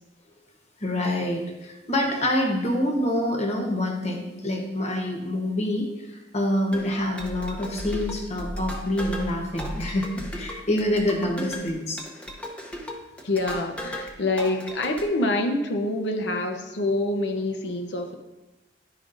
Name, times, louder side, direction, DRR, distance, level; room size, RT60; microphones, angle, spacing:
voice 1, 0.8-12.0, left 1 dB, 40° left, 2 dB, 1.1 m, -26 dB
sound 1, 6.7-14.1 14.4-15.0, equal, 5° left, 0.7 m, -35 dB
voice 2, 13.2-18.1, left 2 dB, 70° left, 5 dB, 0.7 m, -26 dB
10.5 x 4.9 x 2.6 m, 1.0 s
head